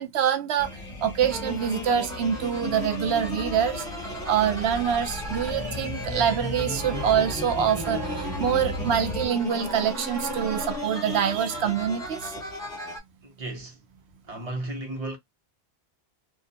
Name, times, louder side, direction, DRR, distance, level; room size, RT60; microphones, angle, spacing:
voice 1, 0.0-12.4, right 8 dB, 90° right, 0.8 m, -25 dB
sound 1, 0.6-9.3, left 2 dB, 40° left, 0.6 m, -37 dB
sound 2, 1.2-13.0, left 1 dB, 5° left, 0.7 m, -35 dB
sound 3, 2.3-12.3, right 6 dB, 65° right, 1.0 m, -42 dB
voice 2, 13.2-13.8 14.3-15.2, right 2 dB, 40° right, 0.8 m, -34 dB
2.3 x 2.3 x 2.6 m
omnidirectional pair, 1.1 m